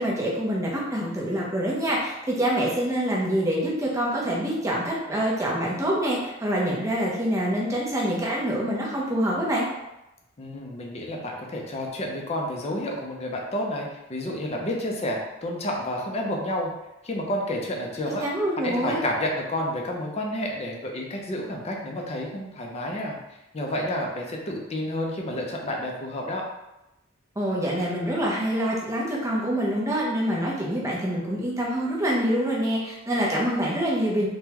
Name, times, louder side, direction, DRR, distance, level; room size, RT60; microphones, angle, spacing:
voice 1, 0.0-9.7 18.2-19.0 27.4-34.3, equal, 15° right, -4 dB, 0.7 m, -26 dB
voice 2, 10.4-16.7 17.0-18.2 18.6-23.2 23.5-26.4, left 1 dB, 30° left, 0 dB, 0.5 m, -30 dB
3.5 x 2.2 x 2.9 m, 0.93 s
head